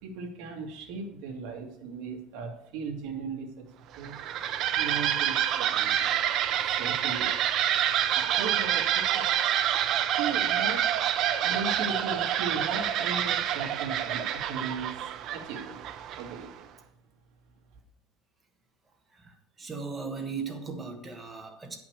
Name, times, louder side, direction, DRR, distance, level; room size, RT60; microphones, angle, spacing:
voice 1, 0.0-3.7 3.9-4.1 4.7-6.1 6.6-7.4 7.7-9.3 10.2-10.9 11.4-14.9 15.3-16.7, right 4 dB, 60° right, 1 dB, 2.1 m, -37 dB
sound 1, 3.9-16.5, right 10 dB, 40° right, 0.6 m, -27 dB
voice 2, 19.1-21.8, right 5 dB, 15° right, 3 dB, 1.3 m, -37 dB
9.4 x 5.9 x 6.5 m, 0.79 s
cardioid pair, 175°, 0 cm